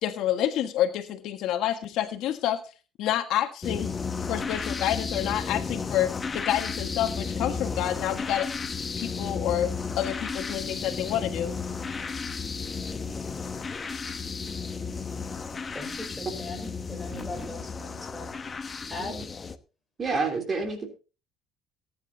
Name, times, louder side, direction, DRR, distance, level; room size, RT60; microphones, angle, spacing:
voice 1, 0.0-2.6 3.0-3.9 4.3-8.5 9.0-11.5, left 11 dB, 70° left, 7 dB, 1.5 m, -28 dB
sound 1, 3.6-19.6, left 5 dB, 25° left, 1.0 m, -33 dB
voice 2, 15.7-19.2, left 2 dB, 5° left, 1 dB, 5.1 m, -40 dB
voice 3, 20.0-20.9, right 4 dB, 30° right, 5 dB, 3.3 m, -29 dB
18.5 x 10.0 x 2.8 m, 0.33 s
cardioid pair, 115°, 0 cm